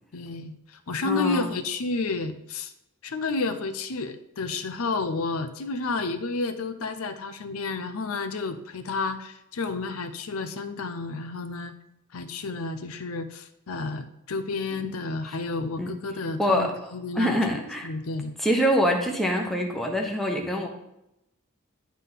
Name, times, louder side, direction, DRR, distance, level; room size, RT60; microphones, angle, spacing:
voice 1, 0.1-2.7 3.0-11.7 12.1-17.4 17.8-18.3, left 3 dB, 80° left, 10 dB, 0.6 m, -31 dB
voice 2, 1.0-1.5 15.3-15.4 15.8-15.9 16.4-16.7 17.1-17.9 18.4-20.7, equal, ahead, 0 dB, 1.1 m, -24 dB
9.7 x 3.7 x 5.7 m, 0.83 s
head